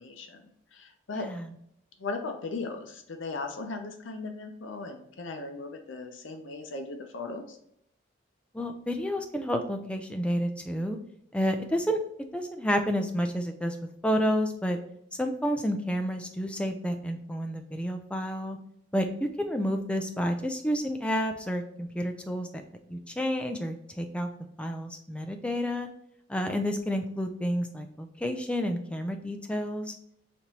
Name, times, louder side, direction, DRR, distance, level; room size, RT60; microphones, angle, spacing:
voice 1, 0.0-1.3 2.0-7.6, left 3 dB, 70° left, 5 dB, 0.6 m, -37 dB
voice 2, 1.1-1.5 8.5-11.0 11.3-12.0 12.3-13.8 14.0-14.8 15.1-18.6 18.9-19.0 19.4-22.5 22.9-24.3 24.6-25.9 26.3-29.9, equal, 5° left, 4 dB, 0.4 m, -30 dB
5.1 x 3.0 x 2.8 m, 0.73 s
head